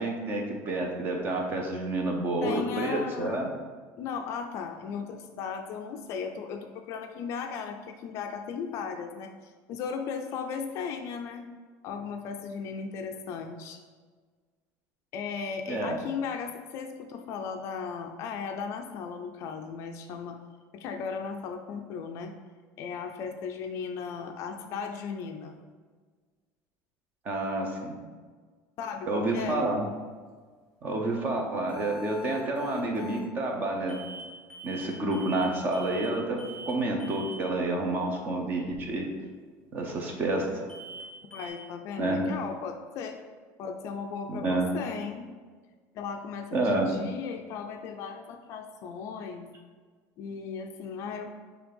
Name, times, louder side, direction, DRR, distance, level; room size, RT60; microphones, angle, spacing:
voice 1, 0.0-3.5 15.7-16.0 27.2-28.0 29.1-29.9 30.8-34.0 34.6-39.1 39.7-40.7 42.0-42.2 44.3-44.7 46.5-46.9, right 2 dB, 25° right, 1 dB, 0.8 m, -29 dB
voice 2, 2.4-3.4 4.0-9.3 9.7-11.5 11.8-13.8 15.1-20.4 20.7-22.3 22.8-25.6 28.8-29.7 41.3-43.2 43.6-45.3 45.9-49.5 50.2-51.3, left 6 dB, 40° left, 5 dB, 0.4 m, -36 dB
sound 1, 31.7-33.3 33.9-34.2 34.5-34.9 35.1-35.5 35.7-36.1 36.4-36.7 37.0-37.4 40.7-41.0 41.3-41.5, right 1 dB, ahead, 1.7 m, -43 dB
6.1 x 3.4 x 5.3 m, 1.5 s
cardioid pair, 180°, 7 cm